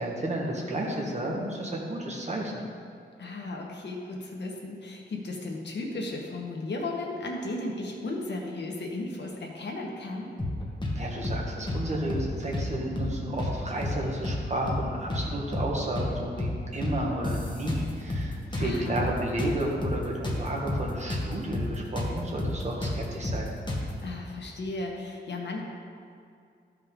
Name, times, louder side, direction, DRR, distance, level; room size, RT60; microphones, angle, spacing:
voice 1, 0.0-2.6 10.9-23.5, right 1 dB, 40° right, -2 dB, 1.6 m, -32 dB
voice 2, 3.2-10.3 18.6-19.0 24.0-25.6, left 2 dB, 75° left, 0 dB, 1.4 m, -35 dB
sound 1, 10.4-11.0 11.2-11.4 11.7-12.7 13.0-13.1 13.4-14.4 14.7-14.8 15.1-16.1 16.4-16.5 16.8-18.3 18.5-21.3 21.5-21.7 22.0-24.0, left 1 dB, 25° left, 1.3 m, -30 dB
13.5 x 5.4 x 3.8 m, 2.3 s
wide cardioid pair, 110°, 18 cm